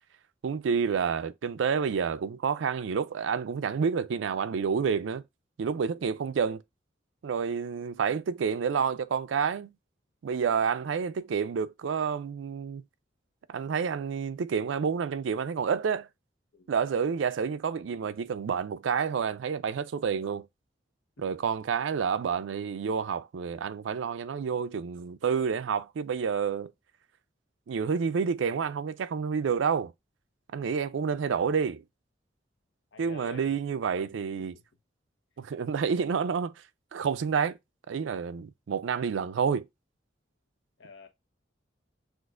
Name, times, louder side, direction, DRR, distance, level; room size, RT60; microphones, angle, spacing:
voice 1, 0.4-5.2 5.6-6.6 7.2-9.7 10.2-12.8 13.5-16.1 16.7-20.5 21.2-26.7 27.7-29.9 30.5-31.8 33.0-34.5 35.4-36.5 36.9-37.6 37.9-39.7, right 6 dB, 85° right, 0.4 m, -29 dB
voice 2, 32.9-33.6 34.4-34.5 40.8-41.1, left 4 dB, 70° left, 0.9 m, -48 dB
6.3 x 2.5 x 2.4 m
head